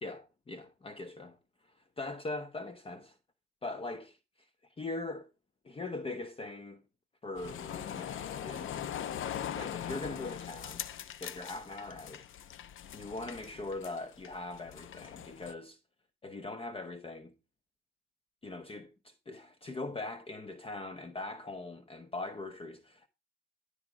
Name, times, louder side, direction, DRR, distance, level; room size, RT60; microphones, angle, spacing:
voice 1, 0.0-1.4 1.7-3.2 3.6-4.2 4.8-5.3 5.6-6.8 7.2-8.8 9.5-10.8 11.2-12.3 12.9-15.8 16.2-17.3 18.4-23.1, left 2 dB, 20° left, 1.0 m, -41 dB
sound 1, 7.3-15.5, left 10 dB, 40° left, 0.8 m, -41 dB
12.0 x 4.9 x 5.2 m
hypercardioid pair, 75°, 30 cm